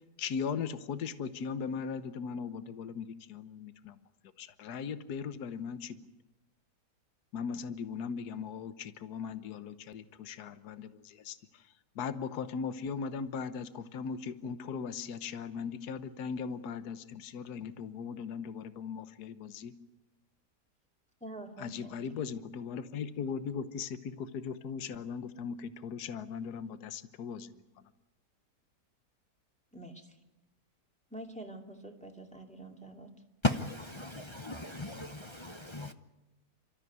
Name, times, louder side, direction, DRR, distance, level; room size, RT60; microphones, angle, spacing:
voice 1, 0.2-4.0 4.4-6.0 7.3-11.4 12.0-19.7 21.6-27.5, left 6 dB, 70° left, 1.5 m, -38 dB
voice 2, 21.2-21.9 29.7-30.0 31.1-33.1, right 1 dB, 5° left, 2.5 m, -46 dB
voice 3, 33.4-35.9, left 2 dB, 25° left, 0.6 m, -35 dB
29.5 x 14.0 x 9.4 m
omnidirectional pair, 1.8 m